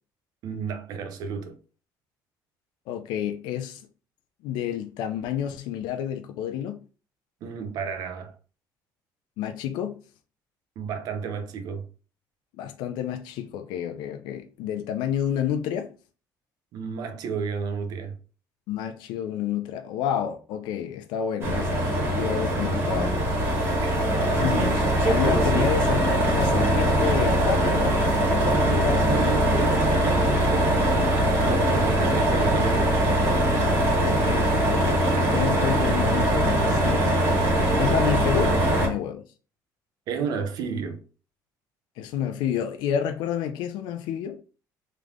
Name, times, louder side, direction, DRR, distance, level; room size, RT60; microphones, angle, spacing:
voice 1, 0.4-1.6 7.4-8.3 10.8-11.9 16.7-18.2 23.8-24.5 25.5-25.6 28.4-30.9 31.4-32.9 38.4-38.8 40.1-41.0, right 6 dB, 55° right, 0.8 m, -32 dB
voice 2, 2.9-3.8 4.4-6.8 9.4-10.0 12.6-15.9 18.7-23.2 24.4-24.8 25.1-29.2 32.0-32.2 34.0-37.2 37.7-39.2 42.0-44.4, left 9 dB, 85° left, 0.5 m, -30 dB
sound 1, 21.4-38.9, right 1 dB, 30° right, 1.5 m, -22 dB
3.5 x 3.3 x 3.6 m
cardioid pair, 165°, 8 cm